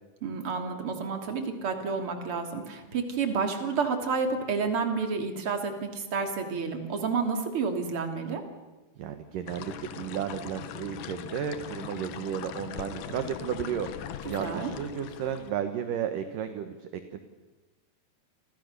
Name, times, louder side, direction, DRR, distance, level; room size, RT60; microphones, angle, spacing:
voice 1, 0.2-8.4 14.4-14.7, right 5 dB, 35° right, 5 dB, 3.4 m, -30 dB
voice 2, 9.0-17.2, right 9 dB, 65° right, 8 dB, 2.6 m, -33 dB
sound 1, 9.5-15.5, left 10 dB, 65° left, 2.5 m, -40 dB
30.0 x 26.5 x 6.8 m, 1.1 s
omnidirectional pair, 4.7 m